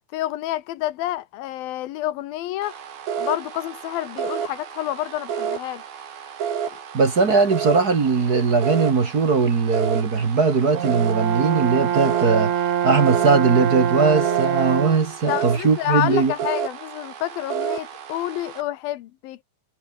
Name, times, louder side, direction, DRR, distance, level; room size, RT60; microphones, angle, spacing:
voice 1, 0.1-2.7 3.2-5.8 6.7-6.8 15.3-19.4, left 14 dB, 80° left, 2.8 m, -28 dB
sound 1, 2.6-18.6, right 8 dB, 80° right, 4.8 m, -31 dB
voice 2, 6.9-16.3, right 4 dB, 35° right, 1.7 m, -19 dB
Brass instrument, 10.7-15.1, right 9 dB, 60° right, 3.1 m, -24 dB
omnidirectional pair, 4.1 m